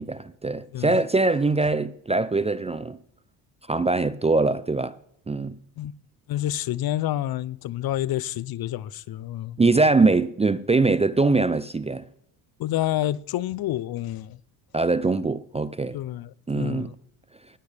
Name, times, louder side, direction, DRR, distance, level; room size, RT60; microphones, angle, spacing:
voice 1, 0.0-3.0 3.7-5.0 5.3-5.6 9.6-12.1 14.7-16.0 16.5-16.9, right 3 dB, 15° right, 0.4 m, -22 dB
voice 2, 6.3-9.6 12.6-14.4 15.9-17.0, left 13 dB, 50° left, 0.6 m, -29 dB
19.5 x 8.5 x 3.4 m
supercardioid pair, 85°, 48 cm